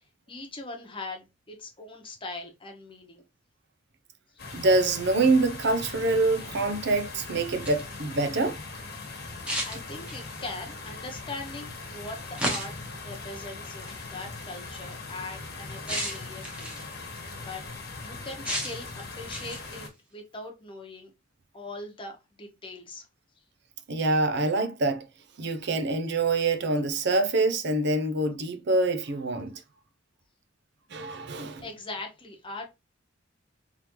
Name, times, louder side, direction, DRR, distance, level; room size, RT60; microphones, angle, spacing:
voice 1, 0.0-3.2 4.3-4.5 9.3-17.6 18.0-21.1 21.5-23.1 31.3-32.7, left 2 dB, 25° left, 1.0 m, -41 dB
sound 1, 4.4-19.9, left 3 dB, 55° left, 1.2 m, -40 dB
voice 2, 4.5-8.6 23.9-25.1 25.4-29.6 30.9-31.6, right 2 dB, 60° right, 0.6 m, -25 dB
sound 2, 7.5-8.0 9.5-10.4 12.4-12.9 13.9-14.1 15.9-16.9 18.4-18.9 19.3-19.8, equal, 5° right, 1.2 m, -33 dB
3.6 x 3.3 x 3.0 m
head